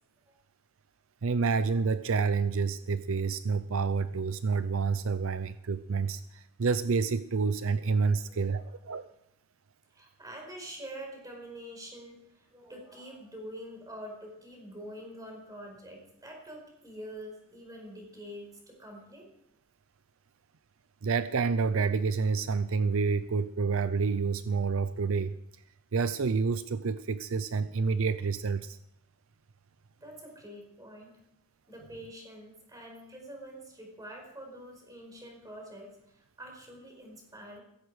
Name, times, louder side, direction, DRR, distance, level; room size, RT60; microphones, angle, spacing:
voice 1, 1.2-9.0 21.0-25.4 25.9-28.8, right 4 dB, 65° right, 13 dB, 0.5 m, -28 dB
voice 2, 8.1-8.8 9.9-19.3 30.0-31.2 31.7-37.6, equal, 15° right, 1 dB, 4.9 m, -46 dB
17.0 x 15.0 x 4.9 m, 0.77 s
head